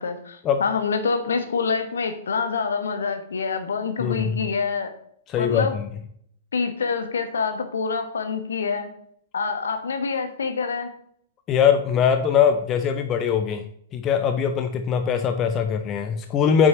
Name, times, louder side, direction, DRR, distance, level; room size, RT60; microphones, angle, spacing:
voice 1, 0.0-4.9 5.4-5.8 6.5-8.9 9.3-10.9, left 5 dB, 65° left, 7 dB, 1.2 m, -26 dB
voice 2, 4.0-4.4 5.3-5.9 11.5-13.6 13.9-16.7, left 7 dB, 25° left, 7 dB, 0.6 m, -21 dB
8.8 x 6.2 x 3.0 m, 0.66 s
figure-of-eight pair, 105°, 0 cm